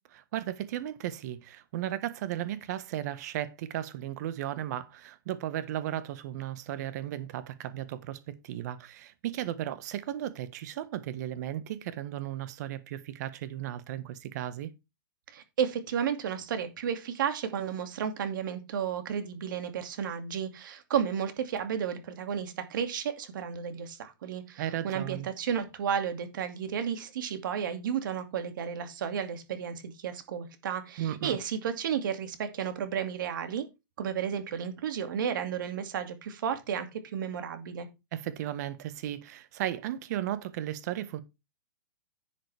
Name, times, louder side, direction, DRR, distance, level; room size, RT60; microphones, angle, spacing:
voice 1, 0.1-14.7 24.6-25.3 31.0-31.4 38.1-41.2, right 12 dB, 50° right, 1.4 m, -35 dB
voice 2, 15.3-33.6 34.0-37.9, right 8 dB, 70° right, 2.5 m, -33 dB
11.0 x 7.5 x 3.5 m
hypercardioid pair, 145°, 11 cm